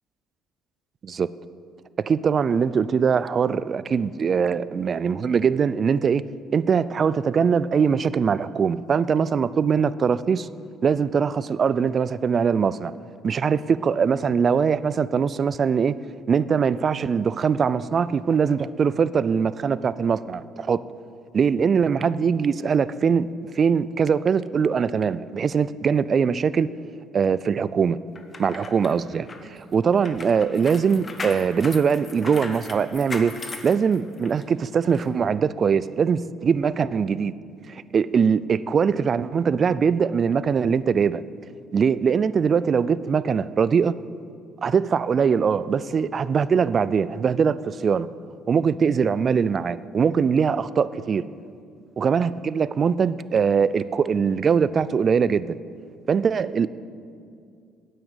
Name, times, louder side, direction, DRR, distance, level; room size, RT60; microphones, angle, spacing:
voice 1, 2.1-6.2 6.5-10.5 10.8-12.9 13.2-16.0 16.3-20.8 21.3-23.3 23.5-26.7 27.1-28.0 28.4-37.3 37.7-41.2 41.7-44.0 44.6-48.1 48.5-51.3 52.0-55.6 56.1-56.7, right 6 dB, 40° right, 17 dB, 0.3 m, -22 dB
sound 1, 28.2-34.4 34.9-35.1, left 3 dB, 25° left, 1.1 m, -38 dB
9.3 x 8.9 x 8.1 m, 2.4 s
cardioid pair, 110°, 0 cm